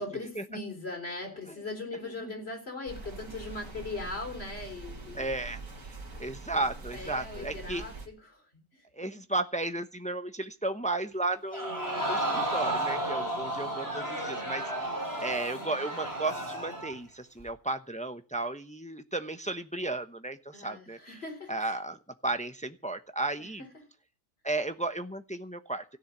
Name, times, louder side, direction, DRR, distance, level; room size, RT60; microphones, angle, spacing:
voice 1, 0.0-5.3 6.6-9.2 13.2-13.4 20.5-21.8 23.4-23.7, left 2 dB, 50° left, 3 dB, 4.3 m, -40 dB
sound 1, 2.9-8.1, right 3 dB, 80° right, 2.8 m, -44 dB
voice 2, 5.1-5.6 6.2-7.8 9.0-14.6 15.2-17.1 17.4-20.4 20.6-21.0 21.5-22.0 22.2-23.6 24.4-25.8, right 2 dB, 5° left, 8 dB, 0.8 m, -34 dB
Crowd, 11.5-17.0 17.4-17.5, right 1 dB, 15° right, 3.8 m, -33 dB
16.0 x 7.1 x 9.7 m, 0.36 s
omnidirectional pair, 1.4 m